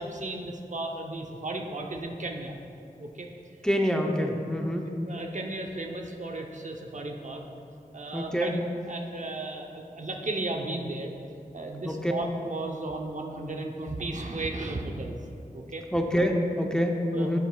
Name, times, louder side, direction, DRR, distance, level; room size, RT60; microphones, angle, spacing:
voice 1, 0.0-2.6 3.0-3.3 3.9-4.1 4.9-7.5 7.9-8.6 8.9-11.1 11.5-15.2 15.5-15.8 17.1-17.4, right 2 dB, 50° right, 2 dB, 0.7 m, -35 dB
voice 2, 3.6-5.0 8.1-8.6 11.8-12.1 15.9-17.4, equal, 5° left, 2 dB, 0.7 m, -26 dB
13.0 x 7.2 x 2.3 m, 2.6 s
wide cardioid pair, 70°, 16 cm